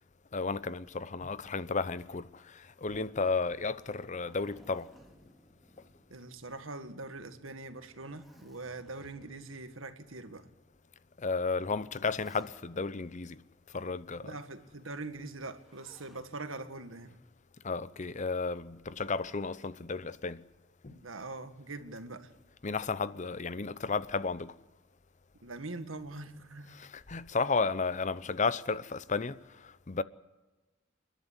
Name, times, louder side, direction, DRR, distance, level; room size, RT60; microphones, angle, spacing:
voice 1, 0.3-4.9 11.2-13.4 13.7-14.4 17.6-20.4 20.8-21.0 22.6-24.5 26.7-30.0, left 4 dB, 40° left, 0.7 m, -33 dB
Zipper (clothing), 4.0-6.7 7.0-7.1 7.7-9.5 10.3-10.4 11.4-12.9 15.4-16.3 17.6-18.1, equal, ahead, 3.1 m, -60 dB
voice 2, 6.1-10.5 14.2-17.2 20.9-22.3 25.4-26.8, right 2 dB, 85° right, 1.8 m, -43 dB
29.0 x 11.5 x 9.8 m
head